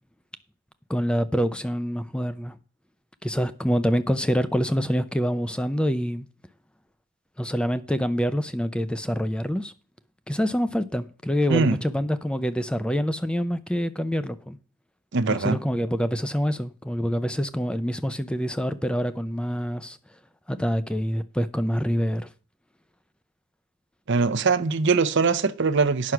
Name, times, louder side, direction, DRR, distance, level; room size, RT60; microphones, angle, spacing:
voice 1, 0.9-2.6 3.2-6.3 7.4-9.7 10.3-14.6 15.3-20.0 20.5-22.3, equal, 5° left, 0.5 m, -26 dB
voice 2, 15.1-15.6 24.1-26.1, right 4 dB, 55° right, 0.7 m, -22 dB
9.5 x 6.2 x 5.8 m
head